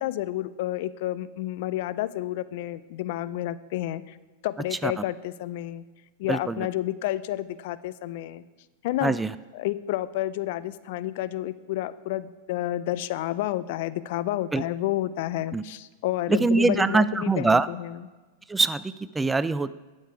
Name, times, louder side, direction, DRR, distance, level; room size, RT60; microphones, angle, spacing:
voice 1, 0.0-4.2 4.4-5.8 6.2-8.4 8.8-9.2 9.5-18.0, left 14 dB, 60° left, 16 dB, 0.4 m, -30 dB
voice 2, 6.3-6.7 9.0-9.3 14.5-14.6 15.5-15.6 16.3-17.7 18.5-19.7, right 3 dB, 10° right, 16 dB, 0.3 m, -23 dB
11.5 x 6.6 x 4.7 m, 1.3 s
hypercardioid pair, 100°, 0 cm